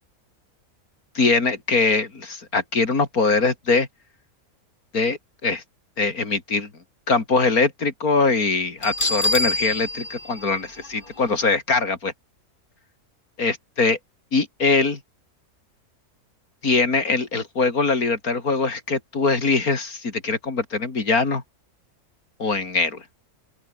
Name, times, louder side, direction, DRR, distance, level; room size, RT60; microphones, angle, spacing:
voice 1, 1.2-3.9 4.9-5.6 6.0-6.7 7.1-12.1 13.4-14.0 14.3-15.0 16.6-21.4 22.4-23.0, left 4 dB, 75° left, 3.6 m, -22 dB
Bell, 8.8-11.5, left 1 dB, 35° left, 5.0 m, -27 dB
open air
omnidirectional pair, 1.6 m